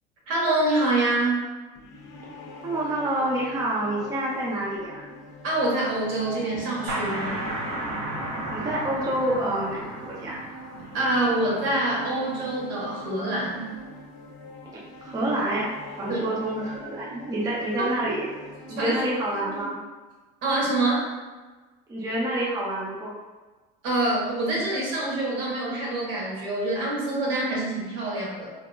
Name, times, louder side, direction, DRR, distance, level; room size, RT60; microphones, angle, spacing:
voice 1, 0.3-1.4 5.4-7.4 10.9-13.7 16.1-16.2 18.8-19.0 19.5-19.6 20.4-21.0 23.8-28.5, right 2 dB, 65° right, -4 dB, 1.0 m, -25 dB
sound 1, 1.8-19.4, left 2 dB, 65° left, 0.5 m, -43 dB
voice 2, 2.6-5.0 8.5-10.4 15.0-15.7 16.0-18.3 18.7-19.8 21.9-23.1, right 1 dB, 20° right, -5 dB, 0.4 m, -28 dB
sound 2, 6.9-12.3, right 1 dB, 90° right, 0.7 m, -34 dB
2.9 x 2.3 x 2.2 m, 1.3 s
cardioid pair, 120°, 20 cm